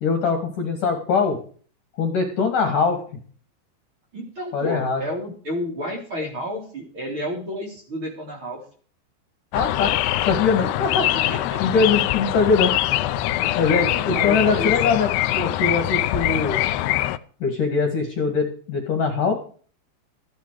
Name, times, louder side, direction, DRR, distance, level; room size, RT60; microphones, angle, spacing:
voice 1, 0.0-1.4 2.0-3.0 4.5-5.0 9.5-9.9 10.2-16.6 17.4-19.4, left 5 dB, 50° left, 4 dB, 2.9 m, -22 dB
voice 2, 4.1-8.6 11.3-11.6 13.4-14.7, equal, 25° right, 0 dB, 4.1 m, -31 dB
sound 1, 9.5-17.2, left 15 dB, 85° left, 2.3 m, -23 dB
15.5 x 10.0 x 4.9 m, 0.43 s
omnidirectional pair, 5.7 m